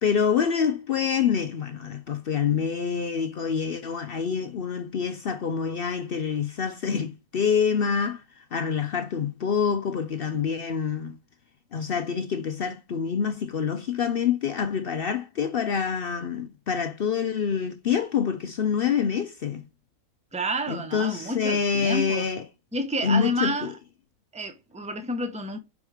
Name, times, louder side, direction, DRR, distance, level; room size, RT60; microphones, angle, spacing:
voice 1, 0.0-8.2 8.5-11.2 11.7-19.6 20.7-22.4 23.0-23.7, left 7 dB, 65° left, 0.5 m, -26 dB
voice 2, 20.3-22.2 22.7-23.7 24.3-25.6, right 1 dB, 5° right, 0.7 m, -30 dB
5.3 x 4.7 x 4.9 m
omnidirectional pair, 1.6 m